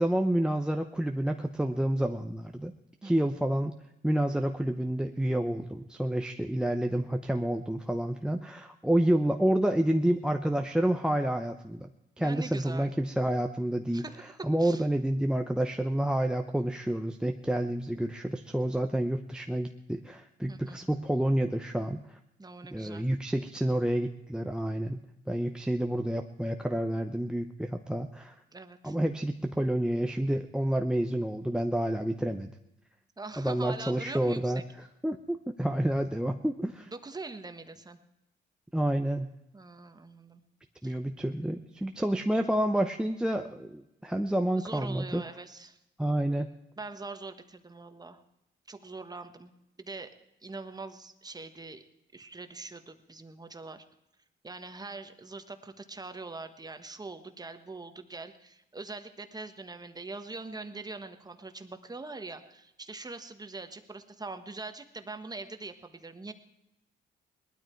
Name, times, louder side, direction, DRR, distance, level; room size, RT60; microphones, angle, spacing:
voice 1, 0.0-2.7 3.0-3.7 4.0-11.9 12.2-14.0 14.4-22.2 22.7-25.0 25.3-28.3 28.8-32.5 33.4-34.6 35.0-36.9 38.7-39.3 40.8-45.2 46.0-46.5, right 1 dB, 5° right, 4 dB, 0.8 m, -29 dB
voice 2, 12.2-12.9 13.9-14.9 20.5-20.8 22.4-23.1 28.5-29.0 33.2-34.6 36.9-38.0 39.5-40.4 40.8-41.0 44.6-45.8 46.8-48.2 48.7-49.5 49.8-50.1 50.4-51.8 52.1-53.8 54.4-66.3, right 3 dB, 20° right, 8 dB, 1.4 m, -43 dB
19.5 x 12.5 x 4.6 m, 0.88 s
cardioid pair, 90°, 20 cm